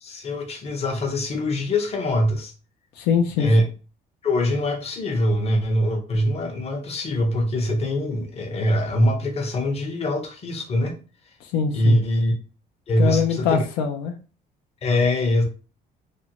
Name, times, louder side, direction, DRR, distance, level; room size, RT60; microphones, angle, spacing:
voice 1, 0.0-2.5 3.4-3.6 4.2-10.9 11.7-12.3 12.9-13.6 14.8-15.4, left 1 dB, 40° left, 3 dB, 0.7 m, -23 dB
voice 2, 3.0-3.5 11.4-12.0 13.0-14.1, left 6 dB, 85° left, 4 dB, 0.4 m, -22 dB
2.5 x 2.1 x 2.8 m, 0.35 s
cardioid pair, 110°, 17 cm